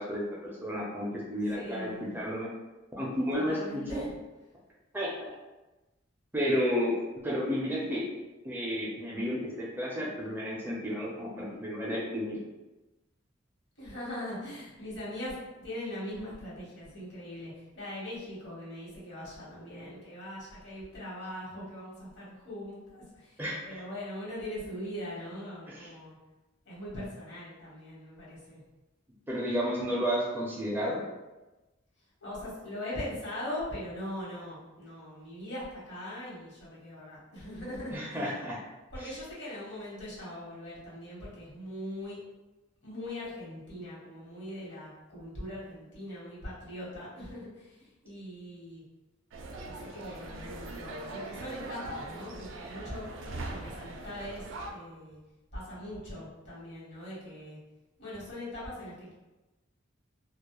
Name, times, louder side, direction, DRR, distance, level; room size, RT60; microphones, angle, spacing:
voice 1, 0.0-1.9 2.1-2.5 3.0-4.0 4.9-5.4 6.3-6.9 7.2-8.0 8.4-12.4 23.4-23.8 25.7-25.9 29.3-31.0 37.9-38.6, equal, 10° right, -5 dB, 0.4 m, -32 dB
voice 2, 1.5-2.2 3.3-4.1 13.8-26.1 26.6-28.6 32.2-38.3 38.9-42.2 42.8-48.8 49.6-53.0 53.5-55.2 55.5-57.6 58.0-59.1, left 1 dB, 65° left, -8 dB, 1.1 m, -41 dB
sound 1, 49.3-54.7, right 2 dB, 80° right, 0.3 m, -41 dB
2.2 x 2.1 x 2.9 m, 1.1 s
head